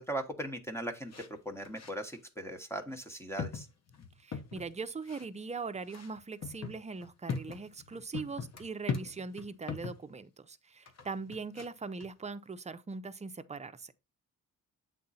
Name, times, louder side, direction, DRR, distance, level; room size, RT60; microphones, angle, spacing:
voice 1, 0.0-3.7, right 1 dB, 5° left, 1.1 m, -39 dB
sound 1, 1.1-1.3 1.6-2.2 2.9-3.0 3.4-4.7 5.1-5.3 5.9-10.0 10.9-11.7 12.0-12.1, left 5 dB, 50° left, 1.1 m, -40 dB
voice 2, 4.2-13.9, right 4 dB, 20° right, 0.6 m, -41 dB
8.4 x 3.8 x 4.1 m
wide cardioid pair, 125°, 34 cm